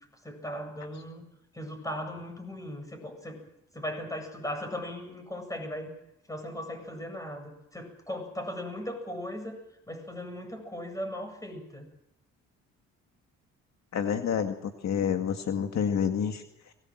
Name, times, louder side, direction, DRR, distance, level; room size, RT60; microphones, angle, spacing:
voice 1, 0.2-1.2 1.5-3.4 3.7-5.9 6.3-9.6 9.9-11.9, left 1 dB, 10° left, 5 dB, 8.0 m, -38 dB
voice 2, 13.9-16.7, left 7 dB, 60° left, 5 dB, 2.1 m, -29 dB
23.5 x 21.0 x 7.8 m, 0.84 s
cardioid pair, 90°, 30 cm